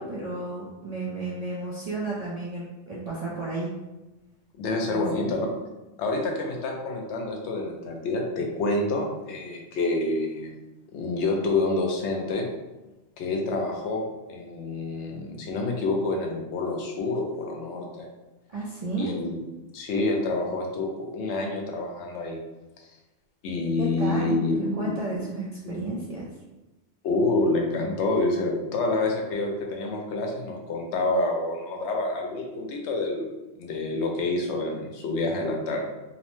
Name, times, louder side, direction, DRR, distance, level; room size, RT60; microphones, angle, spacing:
voice 1, 0.0-3.8 4.9-5.3 18.5-19.1 23.8-24.4 24.8-26.2, right 2 dB, 55° right, -6 dB, 0.4 m, -32 dB
voice 2, 4.6-5.5 6.0-10.5 10.9-12.5 13.2-14.0 14.3-18.1 19.0-19.4 19.7-22.4 23.4-25.0 25.7-25.8 27.0-33.3 33.6-35.8, left 2 dB, 75° left, 1 dB, 0.9 m, -27 dB
2.7 x 2.0 x 3.0 m, 1.1 s
omnidirectional pair, 1.2 m